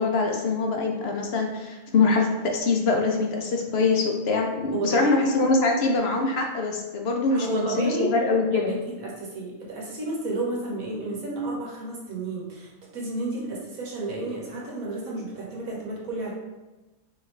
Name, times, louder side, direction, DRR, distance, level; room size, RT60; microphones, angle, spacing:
voice 1, 0.0-8.7, left 3 dB, 60° left, 1 dB, 0.7 m, -23 dB
voice 2, 4.7-5.1 7.3-8.1 8.7-16.3, right 2 dB, 75° right, -4 dB, 1.6 m, -32 dB
4.8 x 3.4 x 3.1 m, 1.1 s
omnidirectional pair, 1.5 m